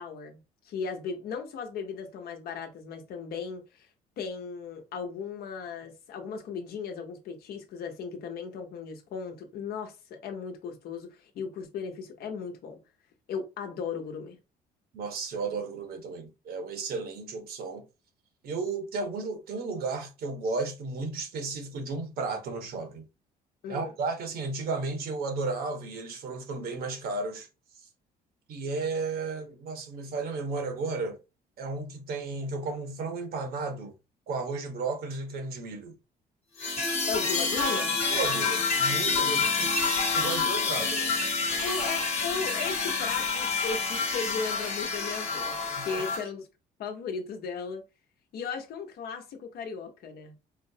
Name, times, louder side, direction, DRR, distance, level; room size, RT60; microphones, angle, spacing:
voice 1, 0.0-3.9 4.2-12.8 13.3-14.4 23.6-23.9 37.1-37.9 41.6-46.5 46.8-47.8 48.3-50.3, left 5 dB, 65° left, 0.9 m, -36 dB
voice 2, 14.9-17.8 18.4-23.0 23.7-27.5 28.5-31.2 31.6-33.9 34.3-35.9 38.1-41.1 41.6-41.8 45.8-46.0, right 3 dB, 65° right, 1.1 m, -34 dB
sound 1, 36.6-46.2, left 4 dB, 40° left, 1.1 m, -28 dB
4.4 x 2.0 x 2.7 m
cardioid pair, 110°, 17 cm